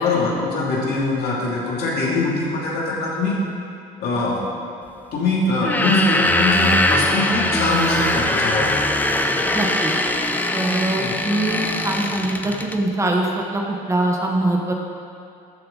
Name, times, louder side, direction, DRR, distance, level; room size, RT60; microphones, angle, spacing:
voice 1, 0.0-3.4 4.0-4.4 5.1-8.8 11.0-11.1, left 2 dB, 70° left, -4 dB, 2.7 m, -22 dB
sound 1, 5.6-12.8, left 1 dB, 10° left, 0.6 m, -21 dB
voice 2, 9.5-9.9 10.5-13.6 13.9-14.7, right 1 dB, 15° right, 0 dB, 1.2 m, -23 dB
13.5 x 7.6 x 3.9 m, 2.4 s
cardioid pair, 110°, 17 cm